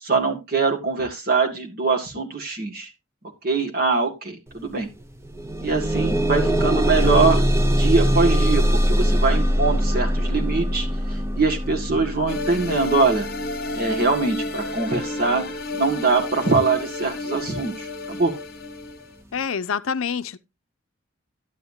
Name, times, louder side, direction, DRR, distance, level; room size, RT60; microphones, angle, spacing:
voice 1, 0.0-2.9 3.4-4.9 5.6-7.4 7.8-13.3 13.7-18.3, right 4 dB, 45° right, 2.0 m, -23 dB
sound 1, 4.5-4.7 5.0-16.0 16.8-16.9 17.4-17.5, equal, 10° right, 0.5 m, -23 dB
sound 2, 12.3-19.2, left 2 dB, 45° left, 1.2 m, -31 dB
voice 2, 19.3-20.4, left 6 dB, 70° left, 0.5 m, -26 dB
12.0 x 9.3 x 2.7 m
head